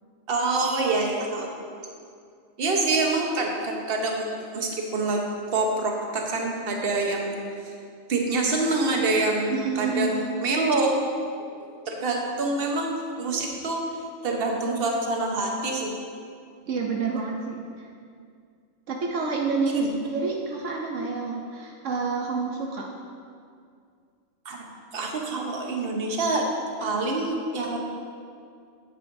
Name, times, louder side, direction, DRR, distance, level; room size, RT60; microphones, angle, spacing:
voice 1, 0.3-1.5 2.6-5.2 5.5-7.4 7.6-7.7 8.1-10.9 11.6-13.8 14.2-16.0 19.7-19.9 24.4-24.6 24.9-26.4 26.8-27.8, right 3 dB, 50° right, 0 dB, 1.2 m, -26 dB
voice 2, 9.5-10.4 16.7-17.9 18.9-22.9, right 4 dB, 75° right, 0 dB, 1.0 m, -29 dB
9.6 x 8.9 x 2.6 m, 2.3 s
omnidirectional pair, 1.3 m